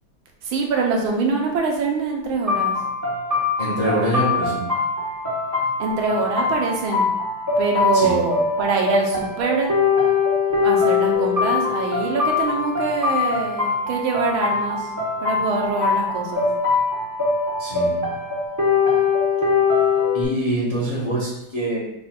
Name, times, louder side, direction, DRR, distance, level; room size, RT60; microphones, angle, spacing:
voice 1, 0.4-2.7 5.8-7.1 7.6-9.7 10.6-14.9 15.2-16.5, right 4 dB, 80° right, 0 dB, 1.6 m, -24 dB
sound 1, 2.5-20.2, left 4 dB, 20° right, 0.5 m, -22 dB
voice 2, 3.6-4.6 7.9-8.2 17.6-18.0 20.1-21.8, right 1 dB, 30° left, -5 dB, 0.7 m, -24 dB
5.2 x 2.3 x 4.3 m, 0.84 s
omnidirectional pair, 2.3 m